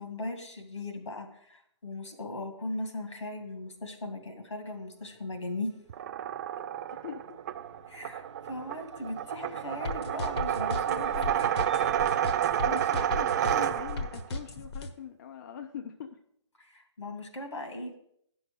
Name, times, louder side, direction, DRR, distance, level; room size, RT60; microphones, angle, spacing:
voice 1, 0.0-5.7 7.9-11.3 12.6-13.0 16.6-18.0, left 2 dB, 80° left, 5 dB, 2.2 m, -38 dB
sound 1, 4.4-13.5, right 3 dB, 90° right, 0.9 m, -51 dB
sound 2, 5.9-14.2, right 10 dB, 40° right, 0.4 m, -30 dB
voice 2, 6.9-7.4 10.9-11.5 11.8-12.1 12.6-16.2, left 8 dB, 40° left, 6 dB, 0.6 m, -43 dB
sound 3, 9.9-14.9, left 2 dB, 65° left, 1.3 m, -35 dB
9.8 x 6.2 x 5.1 m, 0.70 s
hypercardioid pair, 140°, 15 cm